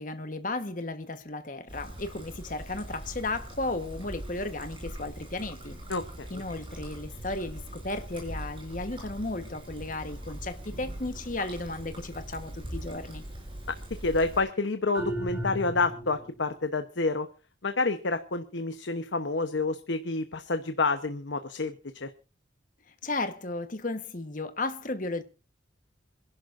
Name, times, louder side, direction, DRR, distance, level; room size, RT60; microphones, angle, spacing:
voice 1, 0.0-5.8 6.3-13.2 23.0-25.2, left 2 dB, 40° left, 1.2 m, -34 dB
Trickle dribble, 1.7-14.4, right 1 dB, 25° right, 7.3 m, -41 dB
voice 2, 5.9-6.4 14.0-17.3 17.6-21.8 22.0-22.1, left 3 dB, 70° left, 1.0 m, -29 dB
sound 1, 14.9-16.4, right 1 dB, 10° right, 1.6 m, -34 dB
26.5 x 11.0 x 2.6 m
head